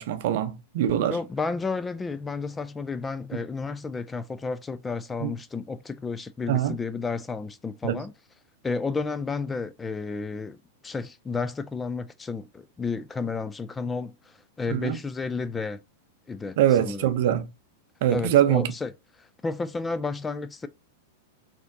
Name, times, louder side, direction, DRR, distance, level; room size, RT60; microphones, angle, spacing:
voice 1, 0.0-1.2 5.2-5.3 6.5-6.8 7.8-8.0 14.7-15.0 16.6-17.5 18.0-18.7, right 11 dB, 60° right, 0.6 m, -23 dB
voice 2, 1.1-8.1 8.6-10.6 10.8-15.8 16.3-17.1 18.1-18.9 19.2-20.7, left 4 dB, 15° left, 0.3 m, -32 dB
4.1 x 2.8 x 2.6 m
hypercardioid pair, 100°, 0 cm